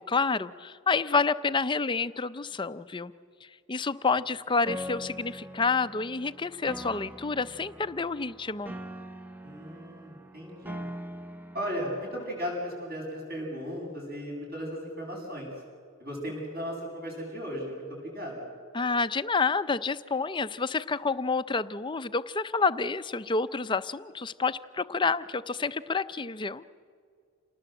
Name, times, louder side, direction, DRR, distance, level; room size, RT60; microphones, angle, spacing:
voice 1, 0.0-3.1 3.4-8.7 18.7-26.7, left 4 dB, 20° left, 13 dB, 0.5 m, -29 dB
Piano, 4.7-12.6, equal, 10° right, 0.8 m, -42 dB
voice 2, 9.4-10.8 11.5-15.5 16.0-18.4, equal, 45° right, 0 dB, 7.9 m, -36 dB
28.0 x 19.5 x 8.0 m, 2.1 s
head